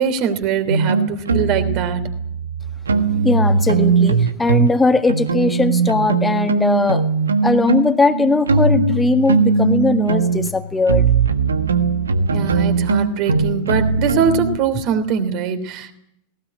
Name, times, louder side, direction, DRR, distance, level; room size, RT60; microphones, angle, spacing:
voice 1, 0.0-2.1 12.3-15.9, right 7 dB, 40° right, 10 dB, 3.2 m, -22 dB
sound 1, 0.7-4.8 5.1-14.6, right 4 dB, 75° right, 1.4 m, -19 dB
voice 2, 3.2-7.0 7.4-11.0, left 3 dB, 10° left, 7 dB, 1.6 m, -19 dB
19.0 x 18.5 x 9.9 m, 0.77 s
figure-of-eight pair, 90°, 0 cm